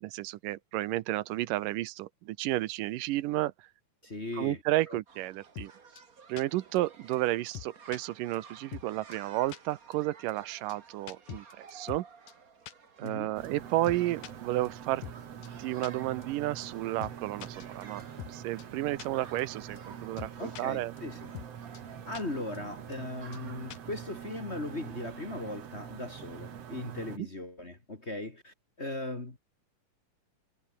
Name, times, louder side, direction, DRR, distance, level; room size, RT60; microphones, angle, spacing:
voice 1, 0.0-3.5 4.4-5.7 6.3-12.1 13.0-15.0 15.6-18.0 18.3-20.9 27.2-27.3, right 16 dB, 85° right, 2.4 m, -32 dB
voice 2, 4.0-4.6 4.9-5.0 13.0-13.3 20.4-21.3 22.0-29.4, left 2 dB, 20° left, 2.4 m, -38 dB
sound 1, 5.1-24.1, right 5 dB, 35° right, 1.8 m, -55 dB
sound 2, 5.6-5.7 6.0-6.1 6.4-6.5 6.8-6.9 7.1-7.2 7.5-8.0 8.3-8.4 8.7-8.9 9.1-9.2 9.5-9.6 9.9-10.0 10.3-10.4 10.7-10.8 11.1-12.0 12.3-12.4 12.7-12.8 13.1-13.2 13.4-13.5 13.8-14.3 14.6-14.7 15.0-15.2 15.4-15.5 15.8-15.9 16.2-16.3 16.6-16.7 17.0-17.1 17.4-18.3 18.6-18.7 19.0-19.1 19.4-19.5 19.8-19.9 20.2-20.6 21.0-21.1 21.3-21.5 21.7-21.8 22.1-22.2 22.5-22.6 22.9-23.0 23.3-23.4 23.7-23.9, left 12 dB, 80° left, 3.1 m, -43 dB
sound 3, 13.3-27.2, right 8 dB, 55° right, 2.8 m, -45 dB
omnidirectional pair, 3.8 m